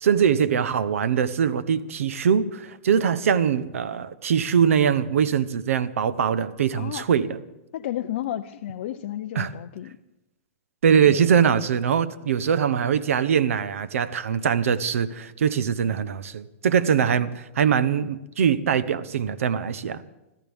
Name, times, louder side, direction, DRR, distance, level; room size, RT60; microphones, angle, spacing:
voice 1, 0.0-7.4 9.4-9.5 10.8-20.0, right 7 dB, 80° right, 15 dB, 0.9 m, -22 dB
voice 2, 6.7-7.0 7.7-9.9 11.0-11.3 15.8-16.2 17.0-17.3, left 12 dB, 45° left, 6 dB, 0.5 m, -33 dB
25.0 x 14.5 x 3.5 m, 0.96 s
hypercardioid pair, 165°, 7 cm